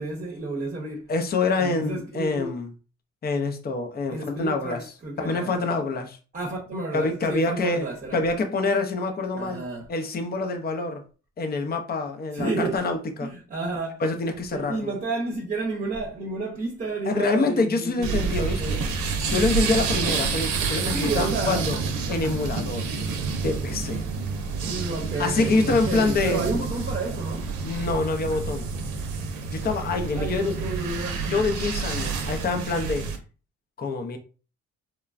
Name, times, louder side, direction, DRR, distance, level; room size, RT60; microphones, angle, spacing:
voice 1, 0.0-1.1 1.6-2.5 4.1-5.6 6.3-8.2 9.4-9.9 12.3-12.8 13.2-14.0 14.5-18.3 18.6-18.8 20.9-21.7 24.6-27.5 30.1-31.4, right 3 dB, 30° right, 0.8 m, -31 dB
voice 2, 1.1-2.7 3.2-4.8 5.2-6.2 6.9-7.8 8.1-9.6 9.9-11.0 11.4-13.3 14.0-14.9 17.1-18.8 19.3-21.8 22.1-22.9 23.4-24.0 25.2-26.6 27.6-28.7 29.5-30.5 31.3-33.1 33.8-34.2, left 3 dB, 30° left, 0.6 m, -26 dB
sound 1, 18.0-33.2, right 5 dB, 75° right, 0.7 m, -29 dB
3.1 x 2.2 x 2.4 m
cardioid pair, 90°, 30 cm